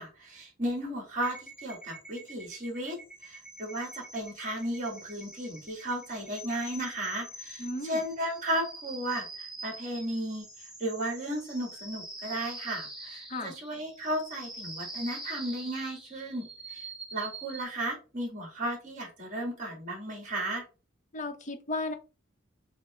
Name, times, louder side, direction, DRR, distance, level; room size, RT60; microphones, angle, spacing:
voice 1, 0.0-20.6, right 1 dB, 40° right, 0 dB, 1.9 m, -35 dB
sound 1, 1.2-17.6, right 2 dB, 5° right, 1.0 m, -45 dB
voice 2, 7.6-8.0 13.3-13.5 21.1-21.9, left 2 dB, 40° left, 7 dB, 0.7 m, -34 dB
6.3 x 2.1 x 3.0 m, 0.32 s
head